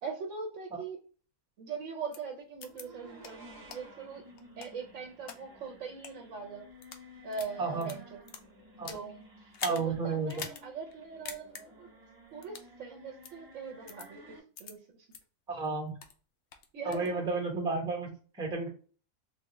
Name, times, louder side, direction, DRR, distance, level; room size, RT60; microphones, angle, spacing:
voice 1, 0.0-1.0 1.6-4.3 4.6-6.7 7.2-8.2 8.9-9.2 9.7-11.9 12.3-15.1 16.7-17.3, right 5 dB, 65° right, 0 dB, 0.9 m, -41 dB
sound 1, 2.1-2.2 2.6-2.8 3.2-3.3 3.7-3.8 4.4-5.4 5.9-6.1 6.7-7.0 7.3-9.1 9.5-9.8 10.3-10.6 10.9-11.0 11.3-11.6 12.4-12.7 13.2-13.3 13.9-14.1 14.6-14.7 15.1-15.2 15.6-16.2 16.5-17.1, left 6 dB, 65° left, 0.7 m, -43 dB
sound 2, 2.6-14.4, equal, 35° right, 1.1 m, -54 dB
voice 2, 9.6-10.4 15.5-16.0 16.8-18.7, right 3 dB, 5° right, -1 dB, 0.6 m, -32 dB
3.4 x 2.3 x 2.9 m, 0.39 s
omnidirectional pair, 1.5 m